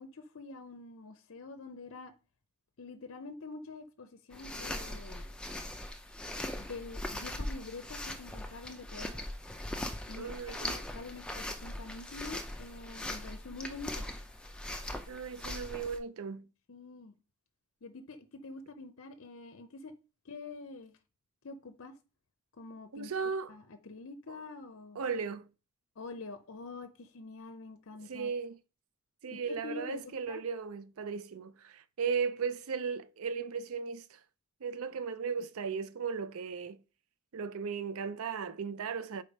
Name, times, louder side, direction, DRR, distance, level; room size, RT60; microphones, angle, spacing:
voice 1, 0.0-2.1 2.8-5.3 6.6-9.3 10.1-14.1 16.7-17.1 17.8-19.9 20.2-21.0 21.4-22.0 22.6-23.1 23.5-25.0 26.0-28.3 29.3-30.4, left 3 dB, 60° left, 0.6 m, -46 dB
sound 1, 4.3-16.0, left 1 dB, 5° left, 0.5 m, -40 dB
voice 2, 10.1-10.7 15.1-16.5 22.9-23.5 24.3-24.4 25.0-25.5 28.1-28.6 29.2-34.2 34.6-36.8 37.3-39.2, right 6 dB, 70° right, 0.5 m, -36 dB
5.1 x 4.3 x 5.2 m
head